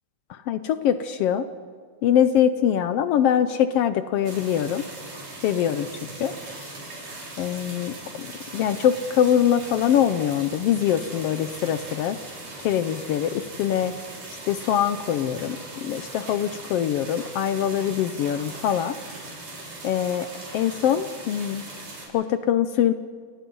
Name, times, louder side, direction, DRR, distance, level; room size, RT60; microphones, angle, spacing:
voice 1, 0.3-1.4 2.0-4.8 5.4-5.9 6.2-6.3 7.4-8.3 8.5-12.2 12.6-13.9 14.5-18.9 19.8-20.3 20.5-21.7 22.1-22.9, left 9 dB, 80° left, 12 dB, 1.3 m, -23 dB
sound 1, 4.2-22.1, right 2 dB, 90° right, 6.3 m, -40 dB
29.5 x 19.0 x 5.4 m, 2.1 s
omnidirectional pair, 3.5 m